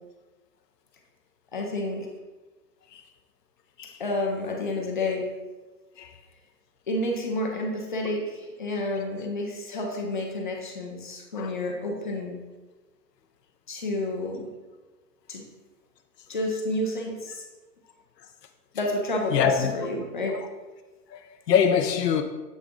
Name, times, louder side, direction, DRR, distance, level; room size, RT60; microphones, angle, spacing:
voice 1, 1.5-2.1 4.0-5.3 6.9-12.4 13.7-14.5 15.3-15.4 16.3-17.4 18.7-20.3, left 1 dB, 30° left, 0.6 m, -30 dB
voice 2, 19.3-19.7 21.1-22.2, left 8 dB, 80° left, 0.6 m, -24 dB
7.4 x 3.6 x 3.6 m
hypercardioid pair, 170°, 48 cm